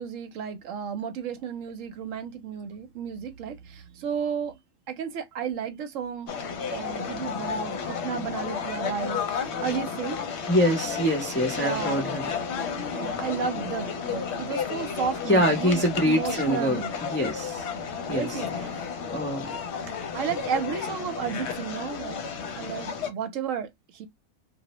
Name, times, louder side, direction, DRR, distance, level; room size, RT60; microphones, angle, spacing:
voice 1, 0.0-4.6 4.9-6.3 6.7-10.2 11.6-12.2 12.9-16.9 18.1-18.7 19.2-19.3 20.1-22.2 22.6-23.7 23.9-24.1, right 7 dB, 80° right, 1.0 m, -33 dB
sound 1, 6.3-23.1, left 6 dB, 65° left, 0.8 m, -32 dB
voice 2, 10.5-12.3 15.3-17.6 18.1-18.4 19.1-19.5, equal, 15° left, 0.4 m, -25 dB
2.4 x 2.0 x 2.9 m
omnidirectional pair, 1.3 m